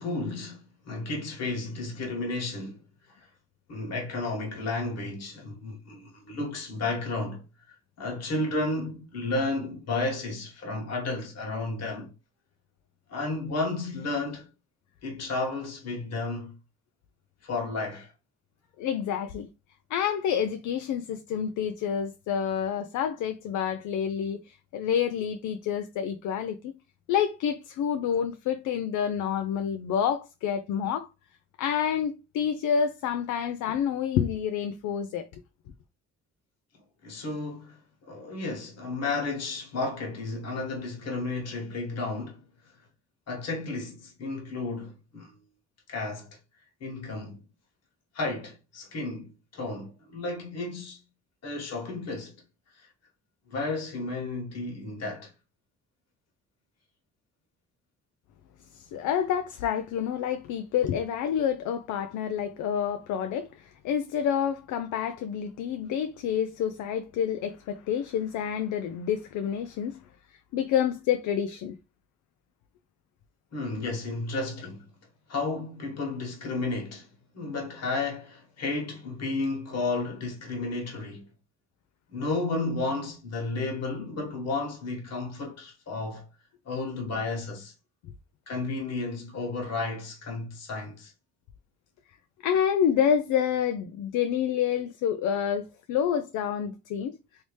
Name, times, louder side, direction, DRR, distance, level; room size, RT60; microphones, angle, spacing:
voice 1, 0.0-2.8 3.1-3.3 3.7-7.4 8.0-12.1 13.1-14.5 15.0-16.5 17.4-18.1 37.0-37.8 38.1-42.4 43.3-45.3 45.9-46.3 46.8-47.4 48.1-51.0 51.4-52.4 52.8-52.9 53.5-55.3 73.5-74.8 75.3-77.1 77.3-81.2 82.1-86.3 86.6-87.7 88.5-91.1, left 3 dB, 55° left, 1.5 m, -32 dB
voice 2, 18.8-19.5 19.9-26.7 27.1-31.1 31.6-35.4 58.7-70.0 70.5-71.8 92.4-97.1, left 8 dB, 80° left, 0.5 m, -28 dB
3.1 x 2.8 x 3.2 m
cardioid pair, 90°, 30 cm